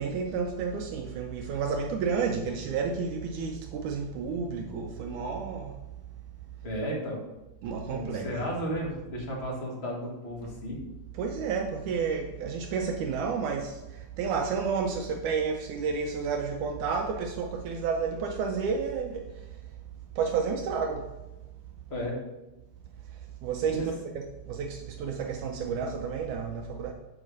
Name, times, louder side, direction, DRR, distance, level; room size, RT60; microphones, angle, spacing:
voice 1, 0.0-5.7 7.6-8.5 11.1-19.2 20.2-21.0 23.4-23.8 24.2-26.9, right 5 dB, 75° right, 3 dB, 2.1 m, -31 dB
voice 2, 6.6-7.2 7.9-10.8 21.9-22.2 23.7-23.8, equal, 30° left, -3 dB, 1.3 m, -33 dB
7.5 x 4.9 x 6.3 m, 1.0 s
omnidirectional pair, 3.7 m